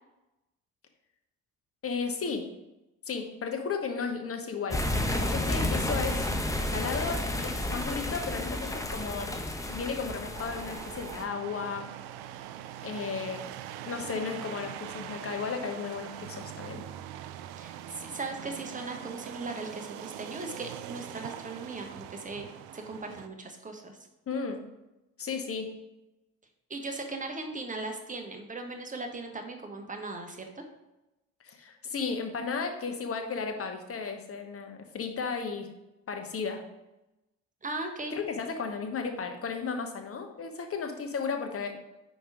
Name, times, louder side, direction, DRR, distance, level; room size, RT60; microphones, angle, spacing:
voice 1, 1.8-2.5 3.1-4.8 5.1-6.3 6.6-9.3 9.7-11.8 12.8-13.5 13.9-16.9 24.3-24.6 25.2-25.8 31.4-35.7 36.1-36.6 38.1-41.8, left 5 dB, 35° left, 4 dB, 1.2 m, -34 dB
sound 1, 4.7-11.2, left 1 dB, 10° left, 0.9 m, -31 dB
voice 2, 5.1-5.5 17.6-22.5 22.7-24.0 26.7-30.6 37.6-38.2, right 2 dB, 20° right, 4 dB, 1.3 m, -38 dB
sound 2, 10.3-23.3, right 11 dB, 65° right, 0.5 m, -42 dB
5.1 x 4.5 x 4.8 m, 0.96 s
hypercardioid pair, 55°, 41 cm